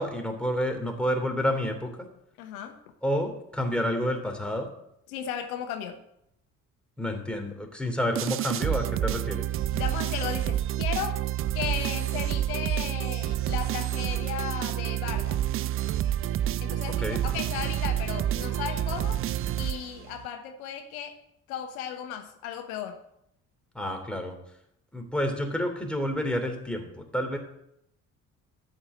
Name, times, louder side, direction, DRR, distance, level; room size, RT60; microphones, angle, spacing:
voice 1, 0.0-2.1 3.0-4.7 7.0-9.5 17.0-17.2 23.7-24.4 24.9-27.4, equal, ahead, 3 dB, 2.9 m, -29 dB
voice 2, 2.4-2.8 5.1-6.0 9.7-11.2 11.5-15.4 16.6-19.2 19.6-21.2 21.5-23.0, left 9 dB, 70° left, 6 dB, 1.1 m, -35 dB
sound 1, 8.2-20.3, right 12 dB, 30° right, 0.4 m, -29 dB
13.0 x 4.7 x 8.0 m, 0.77 s
figure-of-eight pair, 50°, 43 cm